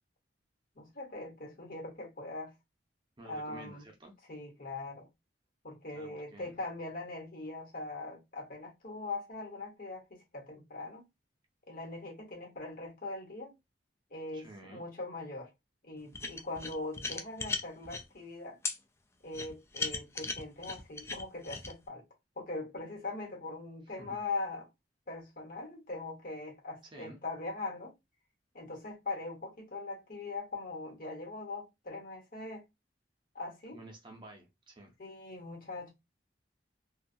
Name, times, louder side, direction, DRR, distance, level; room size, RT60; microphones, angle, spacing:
voice 1, 0.7-2.5 3.2-3.9 4.3-5.1 5.6-11.0 11.7-13.5 14.1-15.5 15.8-18.6 19.2-22.0 22.4-24.7 25.1-27.9 28.5-32.6 33.3-33.8 35.0-35.9, left 2 dB, 55° left, 1.1 m, -41 dB
voice 2, 3.2-4.1 5.9-6.6 14.3-14.9 24.0-24.2 26.9-27.2 33.7-35.0, right 2 dB, 25° right, 0.6 m, -51 dB
sound 1, 16.1-18.0 18.6-18.8 19.3-21.7, left 4 dB, 15° left, 0.3 m, -37 dB
2.5 x 2.3 x 2.6 m
head